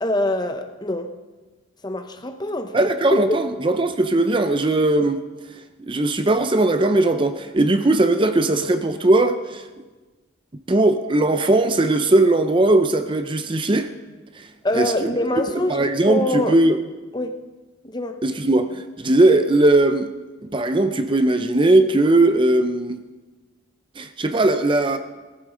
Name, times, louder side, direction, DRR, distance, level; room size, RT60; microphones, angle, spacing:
voice 1, 0.0-1.1 1.8-2.9 3.3-3.5 14.6-16.6 17.1-17.4 17.8-18.2, left 1 dB, 20° left, 0.7 m, -25 dB
voice 2, 2.7-5.2 5.8-9.6 10.7-13.9 14.7-14.9 15.7-16.8 18.2-20.1 20.5-23.0 24.0-25.0, right 2 dB, 25° right, 0.5 m, -18 dB
19.5 x 14.5 x 3.8 m
head